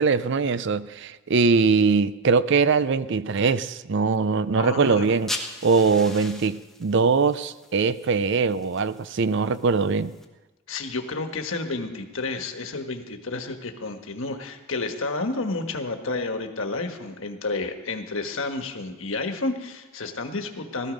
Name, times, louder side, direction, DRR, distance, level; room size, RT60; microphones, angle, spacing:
voice 1, 0.0-5.3 5.6-10.1, right 4 dB, 55° right, 0.5 m, -22 dB
voice 2, 4.6-5.0 10.7-20.9, left 3 dB, 65° left, 1.4 m, -30 dB
sound 1, 5.0-10.2, left 1 dB, ahead, 1.1 m, -40 dB
17.0 x 13.5 x 5.2 m
head